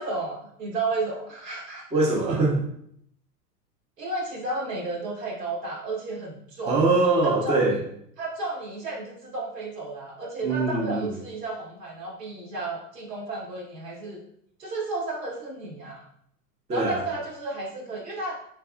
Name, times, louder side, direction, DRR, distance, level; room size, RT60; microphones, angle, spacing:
voice 1, 0.0-1.9 4.0-6.8 7.2-7.8 8.2-14.2 14.6-16.0 16.7-18.3, right 3 dB, 85° right, -3 dB, 1.5 m, -32 dB
voice 2, 1.9-2.6 6.7-7.8 10.4-11.1 16.7-17.1, right 3 dB, 15° right, -2 dB, 0.5 m, -22 dB
3.3 x 3.3 x 2.4 m, 0.69 s
hypercardioid pair, 115°, 47 cm